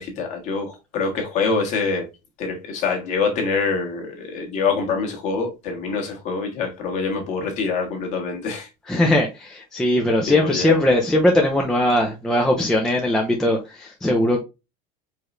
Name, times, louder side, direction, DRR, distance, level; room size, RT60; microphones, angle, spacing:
voice 1, 0.0-2.1 2.4-8.7 10.3-10.8, left 4 dB, 40° left, 1.3 m, -25 dB
voice 2, 8.9-14.4, left 1 dB, 5° left, 0.3 m, -20 dB
4.7 x 3.1 x 2.5 m
cardioid pair, 175°, 19 cm